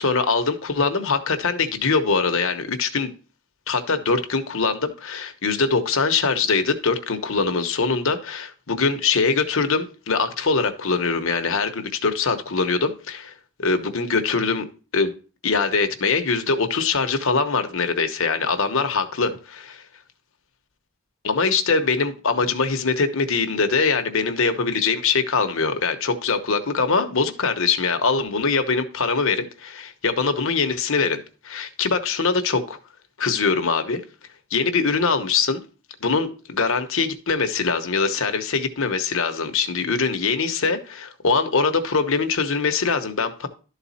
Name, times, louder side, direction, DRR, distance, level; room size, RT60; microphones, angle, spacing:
voice 1, 0.0-3.1 3.7-13.3 13.6-14.7 14.9-15.1 15.4-19.8 21.2-32.8 33.2-34.0 34.5-35.6 36.0-43.5, left 4 dB, 60° left, 1.0 m, -22 dB
12.0 x 4.1 x 4.1 m
head